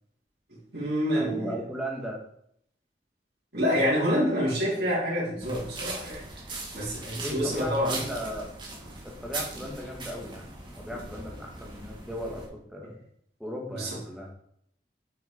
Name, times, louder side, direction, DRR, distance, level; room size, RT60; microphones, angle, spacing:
voice 1, 0.5-1.6 3.5-6.2 6.7-8.0 13.7-14.0, equal, 65° right, -9 dB, 3.3 m, -27 dB
voice 2, 1.1-2.2 7.2-8.5 9.0-12.9 13.4-14.3, equal, 5° right, 0 dB, 1.6 m, -37 dB
sound 1, 5.4-12.5, right 2 dB, 25° right, 2.0 m, -40 dB
7.8 x 6.6 x 5.1 m, 0.69 s
head